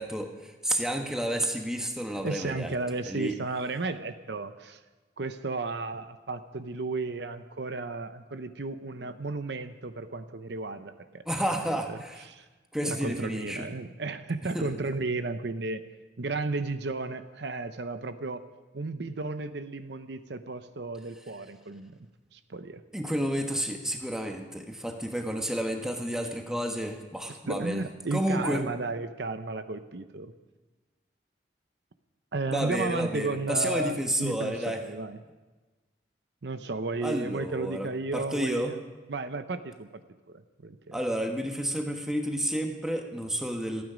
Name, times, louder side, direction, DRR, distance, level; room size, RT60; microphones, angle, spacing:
voice 1, 0.0-2.7 3.0-3.4 11.2-12.3 12.7-13.7 14.5-14.7 22.9-27.8 28.1-28.6 32.5-34.8 37.0-38.8 40.9-43.8, equal, 5° right, 3 dB, 1.2 m, -31 dB
voice 2, 2.2-4.8 5.2-11.2 11.5-12.4 12.8-15.8 16.2-18.4 18.7-22.0 22.3-22.8 27.5-30.3 32.3-35.2 36.4-38.8 39.1-40.0 40.3-41.0, right 3 dB, 65° right, 10 dB, 0.7 m, -34 dB
28.0 x 9.5 x 5.1 m, 1.2 s
head